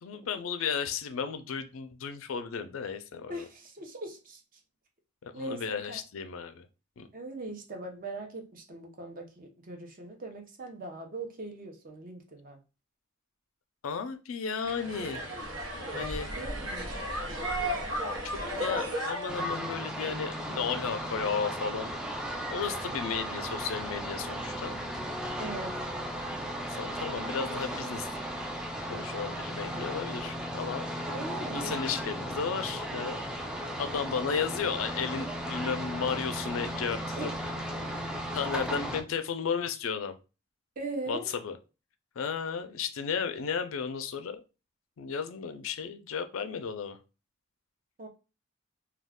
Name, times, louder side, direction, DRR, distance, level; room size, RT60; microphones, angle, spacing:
voice 1, 0.0-3.4 5.2-6.7 7.0-7.1 13.8-15.3 15.9-16.3 18.6-21.9 22.5-24.8 26.7-28.1 28.8-30.8 31.5-33.2 33.8-37.3 38.3-40.2 41.1-41.6 42.2-44.4 45.0-47.0, left 6 dB, 90° left, 0.4 m, -34 dB
voice 2, 3.3-4.4 5.3-6.0 7.1-12.6 16.4-17.0 25.4-25.8 31.1-31.7 37.2-37.3 40.8-41.3 48.0-48.1, right 2 dB, 45° right, 0.7 m, -40 dB
sound 1, 14.6-19.7, equal, 75° right, 1.0 m, -34 dB
sound 2, 19.3-39.0, equal, 5° right, 0.3 m, -36 dB
2.3 x 2.3 x 3.5 m
head